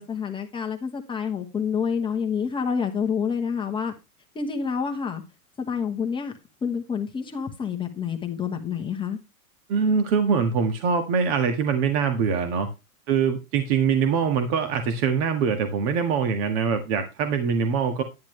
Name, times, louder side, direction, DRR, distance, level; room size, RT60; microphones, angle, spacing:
voice 1, 0.0-3.9 4.3-5.2 5.6-6.3 6.6-9.2, left 6 dB, 10° left, 3 dB, 1.2 m, -28 dB
voice 2, 9.7-12.7 13.1-18.0, right 6 dB, 45° right, 7 dB, 1.8 m, -23 dB
10.5 x 10.0 x 3.2 m, 0.25 s
hypercardioid pair, 145°, 44 cm